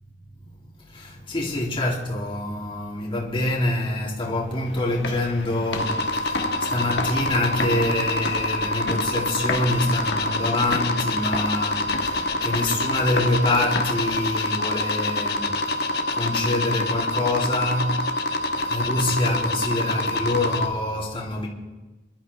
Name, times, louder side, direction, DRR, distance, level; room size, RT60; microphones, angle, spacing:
voice 1, 0.9-21.5, left 1 dB, 30° left, 2.8 m, -26 dB
sound 1, 4.5-14.5, left 3 dB, 85° left, 1.6 m, -34 dB
sound 2, 5.8-20.7, left 1 dB, 65° left, 1.2 m, -26 dB
28.0 x 12.0 x 3.3 m
head